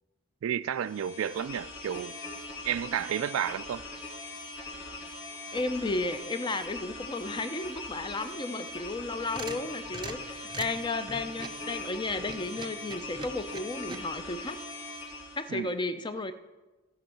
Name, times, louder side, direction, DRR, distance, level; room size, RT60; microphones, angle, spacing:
voice 1, 0.4-2.2 2.6-3.8 15.5-15.7, right 9 dB, 80° right, 0.3 m, -31 dB
sound 1, 0.7-15.5, left 2 dB, 70° left, 2.4 m, -41 dB
voice 2, 5.5-14.6 15.3-16.3, left 2 dB, 20° left, 0.5 m, -33 dB
sound 2, 9.0-11.6 12.2-14.0, right 4 dB, 20° right, 0.6 m, -42 dB
15.0 x 5.3 x 6.3 m
head